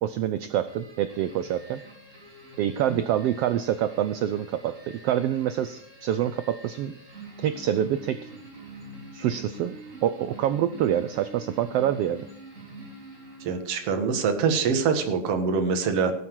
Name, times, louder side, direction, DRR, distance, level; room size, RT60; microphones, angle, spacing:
voice 1, 0.0-1.8 2.6-7.0 7.4-8.3 9.1-9.7 10.0-12.2, right 11 dB, 90° right, 12 dB, 1.3 m, -26 dB
sound 1, 0.7-13.8, right 1 dB, 25° right, 3.3 m, -45 dB
voice 2, 13.4-16.1, right 5 dB, 55° right, 6 dB, 2.4 m, -24 dB
17.5 x 7.8 x 4.7 m, 0.71 s
omnidirectional pair, 3.4 m